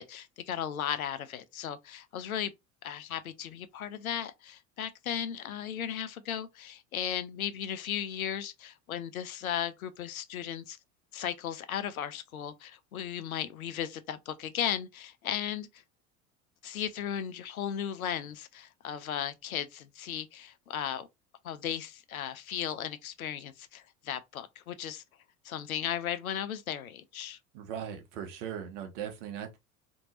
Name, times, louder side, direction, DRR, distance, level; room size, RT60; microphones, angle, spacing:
voice 1, 0.0-2.5 2.8-10.8 11.1-15.7 16.6-21.1 21.4-25.0 25.4-27.4, left 9 dB, 75° left, 0.5 m, -36 dB
voice 2, 27.5-29.6, right 9 dB, 55° right, 1.0 m, -39 dB
2.9 x 2.6 x 2.7 m
figure-of-eight pair, 70°, 43 cm